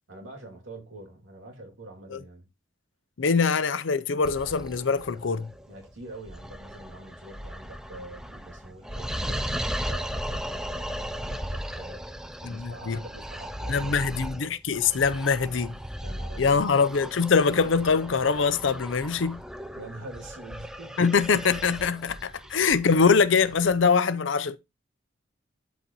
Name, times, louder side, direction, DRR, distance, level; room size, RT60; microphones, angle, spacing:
voice 1, 0.1-2.5 5.7-12.0 12.4-14.1 15.4-15.7 16.0-16.7 19.7-21.1, right 1 dB, 90° right, 2.5 m, -45 dB
voice 2, 3.2-5.5 12.4-13.0 13.7-15.8 16.4-19.4 21.0-24.6, left 5 dB, 75° left, 0.6 m, -23 dB
sound 1, 4.2-23.9, equal, 5° right, 0.4 m, -37 dB
12.0 x 4.1 x 3.0 m
head